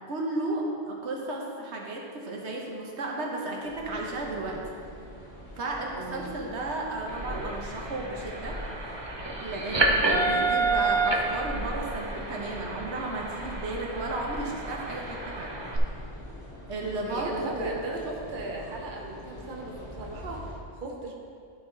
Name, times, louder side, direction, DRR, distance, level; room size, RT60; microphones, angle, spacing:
voice 1, 0.1-4.6 5.6-8.6 9.4-15.5 16.7-17.8, right 2 dB, 80° right, -1 dB, 1.2 m, -34 dB
sound 1, 3.6-20.5, left 1 dB, 20° left, 1.9 m, -45 dB
voice 2, 6.0-6.4 9.7-10.5 17.0-21.1, right 2 dB, 50° right, -1 dB, 1.1 m, -37 dB
sound 2, 7.0-15.8, right 3 dB, 30° right, 0.6 m, -29 dB
12.0 x 4.0 x 3.9 m, 2.3 s
omnidirectional pair, 1.1 m